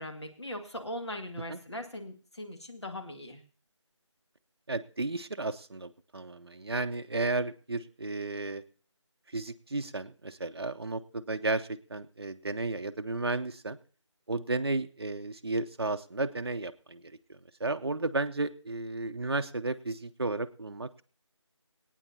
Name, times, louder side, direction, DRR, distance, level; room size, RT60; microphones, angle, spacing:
voice 1, 0.0-3.4, left 1 dB, 60° left, 4 dB, 2.0 m, -40 dB
voice 2, 4.7-8.6 9.3-13.8 14.3-17.0 17.3-21.0, right 2 dB, 55° right, 7 dB, 0.6 m, -33 dB
25.5 x 9.1 x 2.7 m, 0.39 s
figure-of-eight pair, 170°, 16 cm